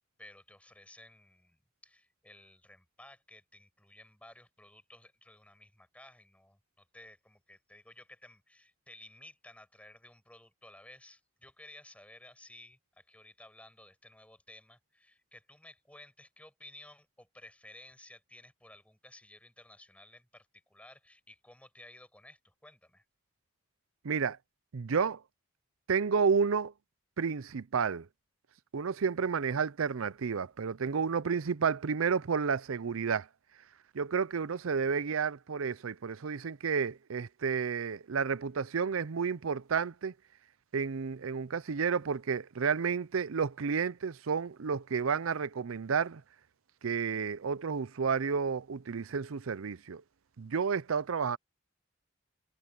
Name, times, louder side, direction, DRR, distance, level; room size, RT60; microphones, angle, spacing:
voice 1, 0.2-23.0, left 1 dB, 5° left, 6.6 m, -55 dB
voice 2, 24.0-24.4 24.7-25.2 25.9-26.7 27.2-28.1 28.7-33.3 33.9-40.1 40.7-46.2 46.8-50.0 50.4-51.4, right 6 dB, 90° right, 0.6 m, -31 dB
head